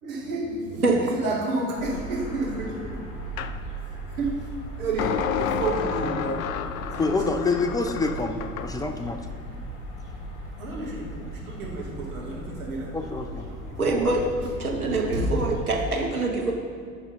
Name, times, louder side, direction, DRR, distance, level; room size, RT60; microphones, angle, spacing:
voice 1, 0.0-3.0 3.9-4.3 4.8-6.4 6.9-7.3 10.6-12.9 13.5-13.8 15.1-15.3 15.7-15.9, right 2 dB, 65° right, -4 dB, 2.1 m, -31 dB
sound 1, 1.7-15.6, right 1 dB, 55° left, 1.6 m, -38 dB
sound 2, 3.4-3.6 5.0-8.7, left 9 dB, 70° left, 0.5 m, -30 dB
voice 2, 7.0-9.2 12.9-13.5 13.8-14.1, left 3 dB, 10° left, 6 dB, 0.4 m, -27 dB
voice 3, 13.8-14.2 14.6-16.5, right 3 dB, 85° right, 0 dB, 1.0 m, -24 dB
11.0 x 4.1 x 5.3 m, 2.1 s
figure-of-eight pair, 65°, 42 cm